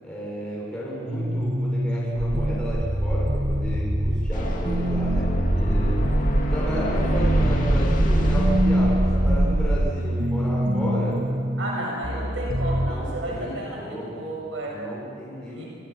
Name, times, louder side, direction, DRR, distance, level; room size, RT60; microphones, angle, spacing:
voice 1, 0.0-5.3 5.6-6.2 6.5-11.2 12.8-14.3 14.7-15.7, right 1 dB, 5° left, -7 dB, 7.1 m, -33 dB
sound 1, 1.1-12.9, right 1 dB, 45° right, 1.8 m, -26 dB
sound 2, 2.2-9.9, right 1 dB, 15° right, 0.6 m, -24 dB
sound 3, 4.3-11.0, left 1 dB, 40° left, 2.4 m, -31 dB
voice 2, 11.6-14.8 15.5-15.7, right 1 dB, 75° right, -3 dB, 7.7 m, -32 dB
29.0 x 26.5 x 6.2 m, 2.3 s
head